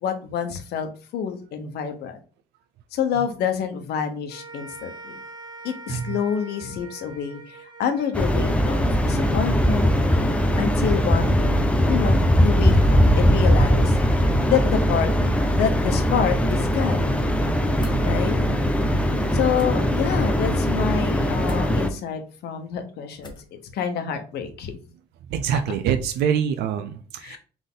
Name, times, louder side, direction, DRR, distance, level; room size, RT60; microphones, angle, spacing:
voice 1, 0.0-2.2 2.9-5.2 5.6-9.9 10.6-14.0 14.5-15.1 15.5-17.1 18.0-18.4 19.3-23.3 23.7-24.7 27.2-27.4, left 7 dB, 75° left, 7 dB, 1.0 m, -27 dB
sound 1, 4.3-10.7, right 3 dB, 25° right, 0.8 m, -44 dB
sound 2, 8.1-21.9, equal, 5° left, 0.6 m, -20 dB
sound 3, 17.8-18.0 19.5-19.7 21.4-21.7 23.2-23.5, left 3 dB, 25° left, 1.0 m, -43 dB
voice 2, 25.3-27.4, right 8 dB, 75° right, 8 dB, 0.5 m, -25 dB
3.9 x 3.5 x 3.7 m, 0.38 s
cardioid pair, 110°, 17 cm